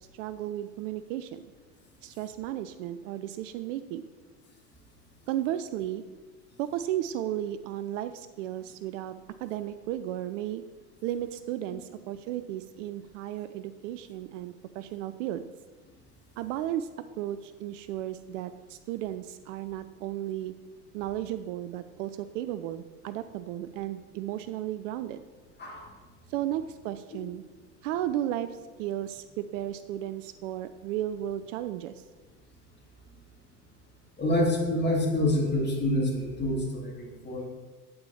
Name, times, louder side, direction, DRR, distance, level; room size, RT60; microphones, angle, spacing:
voice 1, 0.1-1.4 2.0-4.1 5.3-6.0 6.6-9.1 9.4-10.6 11.0-15.5 16.4-16.9 17.2-20.5 20.9-25.2 26.3-27.4 27.8-32.1, right 12 dB, 55° right, 12 dB, 0.6 m, -34 dB
voice 2, 34.2-37.5, left 1 dB, 20° left, -2 dB, 2.9 m, -27 dB
8.7 x 8.7 x 4.3 m, 1.3 s
hypercardioid pair, 85°, 46 cm